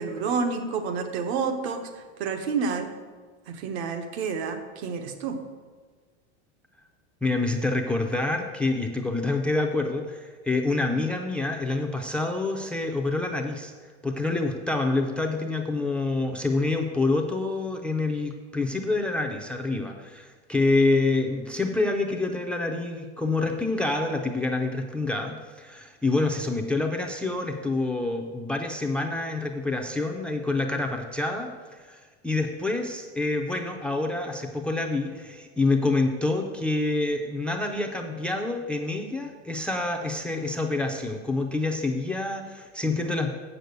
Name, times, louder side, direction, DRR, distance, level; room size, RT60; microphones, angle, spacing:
voice 1, 0.0-2.9 3.5-5.4, right 5 dB, 70° right, 6 dB, 1.3 m, -29 dB
voice 2, 7.2-13.7 14.0-43.3, left 2 dB, 5° left, 3 dB, 0.4 m, -27 dB
7.5 x 6.8 x 7.8 m, 1.5 s
supercardioid pair, 150°, 33 cm